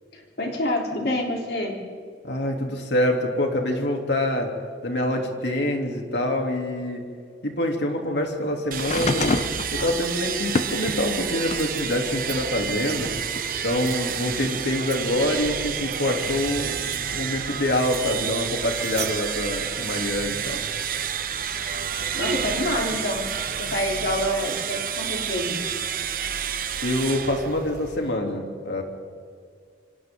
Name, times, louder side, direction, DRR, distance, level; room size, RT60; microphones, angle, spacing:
voice 1, 0.1-1.8 22.1-23.3 23.6-25.6, left 1 dB, 65° left, -1 dB, 3.8 m, -27 dB
voice 2, 2.2-4.5 4.8-7.0 7.4-9.4 9.7-13.1 13.6-16.8 17.1-20.6 26.8-28.8, left 1 dB, 80° left, 2 dB, 3.2 m, -25 dB
sound 1, 8.7-11.8 12.3-13.4 14.4-14.5, left 2 dB, 40° left, 0.8 m, -28 dB
sound 2, 8.7-28.2, right 8 dB, 50° right, 1.0 m, -30 dB
sound 3, 11.5-12.4 12.7-13.0 13.5-14.1 14.8-15.0 15.8-16.0 16.4-16.5 16.8-17.0 17.7-18.1 18.7-19.1, right 9 dB, 65° right, 3.0 m, -38 dB
27.5 x 26.5 x 3.9 m, 2.1 s
head